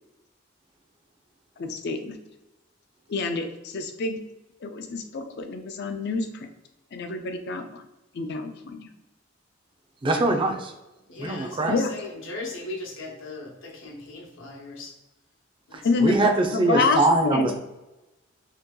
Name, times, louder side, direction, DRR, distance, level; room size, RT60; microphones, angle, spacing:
voice 1, 1.6-2.2 3.1-4.2 4.6-6.5 6.9-7.8 8.1-8.9 11.7-11.9 15.8-17.5, left 3 dB, 60° left, 6 dB, 0.5 m, -27 dB
voice 2, 10.0-10.7 11.2-11.7 15.7-17.5, right 2 dB, 25° right, 4 dB, 0.4 m, -23 dB
voice 3, 11.1-14.9 15.7-16.1, left 2 dB, 75° left, 1 dB, 0.9 m, -38 dB
2.9 x 2.8 x 3.6 m, 1.0 s
head